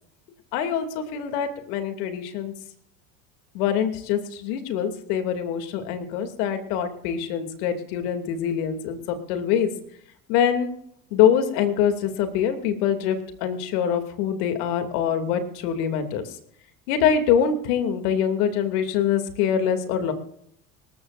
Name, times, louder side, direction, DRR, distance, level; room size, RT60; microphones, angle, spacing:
voice 1, 0.5-2.5 3.5-9.7 10.3-10.7 11.1-16.2 16.9-20.1, left 8 dB, 70° left, 7 dB, 2.8 m, -24 dB
26.0 x 13.5 x 2.6 m, 0.69 s
hypercardioid pair, 85°, 48 cm